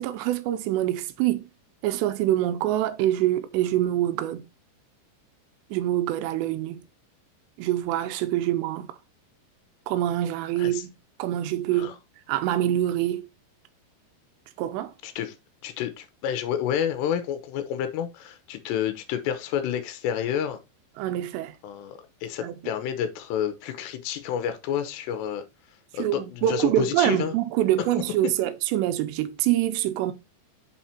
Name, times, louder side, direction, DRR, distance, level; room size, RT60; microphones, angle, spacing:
voice 1, 0.0-1.5 1.8-4.5 5.7-6.8 7.6-8.9 9.9-10.9 11.2-11.9 12.3-13.3 14.6-14.9 21.0-21.6 22.4-22.5 26.0-30.1, right 13 dB, 90° right, 2.9 m, -25 dB
voice 2, 15.0-15.4 15.6-20.6 21.6-25.4 25.9-27.4, left 9 dB, 85° left, 2.9 m, -29 dB
8.0 x 4.4 x 4.2 m
omnidirectional pair, 5.0 m